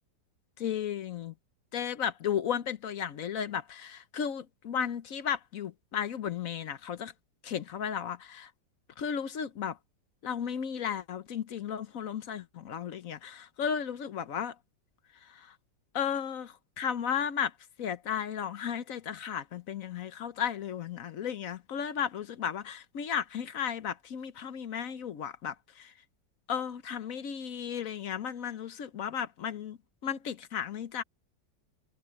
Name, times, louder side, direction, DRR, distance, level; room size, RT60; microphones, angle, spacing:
voice 1, 0.6-1.3 1.7-7.1 7.4-8.5 9.0-9.8 10.2-14.5 15.3-15.5 15.9-17.5 17.8-25.9 26.5-29.8 30.0-31.0, left 8 dB, 55° left, 1.1 m, -34 dB
omnidirectional pair, 2.0 m